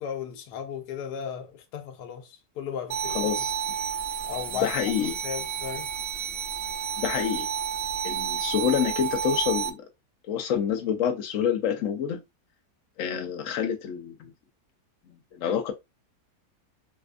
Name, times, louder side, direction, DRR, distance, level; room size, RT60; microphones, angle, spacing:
voice 1, 0.0-3.2 4.3-4.7 5.2-5.9, left 8 dB, 75° left, 1.2 m, -35 dB
sound 1, 2.9-9.7, right 8 dB, 70° right, 1.0 m, -31 dB
voice 2, 3.1-3.5 4.5-5.1 7.0-7.5 8.0-9.8 10.3-12.2 13.0-14.3 15.1-15.7, left 8 dB, 60° left, 0.9 m, -27 dB
4.2 x 2.3 x 2.4 m
omnidirectional pair, 1.7 m